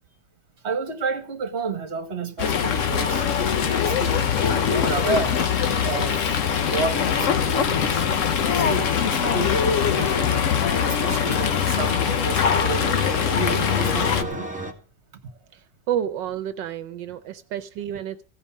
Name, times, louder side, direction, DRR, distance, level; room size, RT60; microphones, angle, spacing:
voice 1, 0.6-6.2 6.6-8.0 8.6-10.3 10.8-14.5, right 3 dB, 40° right, 1.8 m, -31 dB
Fowl, 2.4-14.2, left 7 dB, 55° left, 1.0 m, -22 dB
sound 1, 3.5-14.7, right 1 dB, 5° right, 1.4 m, -37 dB
sound 2, 4.6-10.8, left 8 dB, 75° left, 1.5 m, -39 dB
voice 2, 15.9-18.2, right 10 dB, 80° right, 1.4 m, -29 dB
16.0 x 5.3 x 8.4 m
omnidirectional pair, 1.9 m